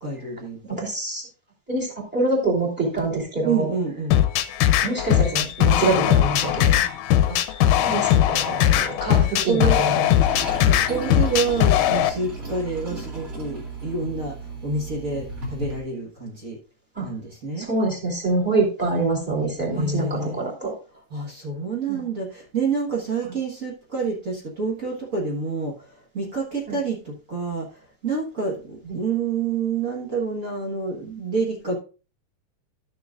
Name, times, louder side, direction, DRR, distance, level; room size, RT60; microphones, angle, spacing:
voice 1, 0.0-0.8 3.4-4.2 9.2-9.8 10.6-16.6 17.0-17.7 19.7-20.5 21.1-31.7, right 4 dB, 90° right, 0.7 m, -28 dB
voice 2, 0.7-1.3 1.7-3.7 4.8-6.8 7.3-10.2 16.9-17.1 17.6-20.7 21.9-22.0 26.7-26.8 28.8-29.0, right 2 dB, 5° right, 2.3 m, -25 dB
sound 1, 4.1-12.1, left 11 dB, 80° left, 2.0 m, -19 dB
Toilet flush, 10.2-15.8, right 2 dB, 35° right, 1.6 m, -34 dB
13.0 x 6.8 x 2.4 m
omnidirectional pair, 3.9 m